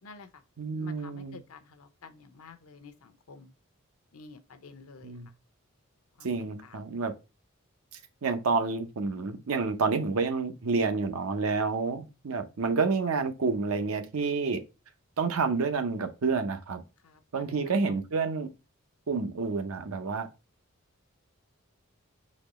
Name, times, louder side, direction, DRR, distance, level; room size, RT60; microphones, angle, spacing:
voice 1, 0.0-0.4 0.7-3.5 4.1-5.2 6.2-6.3 6.6-6.8 17.0-17.5, left 4 dB, 85° left, 0.7 m, -50 dB
voice 2, 0.6-1.4 5.0-5.3 6.2-7.1 8.2-14.6 15.2-16.8 17.3-18.5 19.1-20.3, right 4 dB, 80° right, 0.7 m, -29 dB
4.2 x 2.9 x 4.1 m
head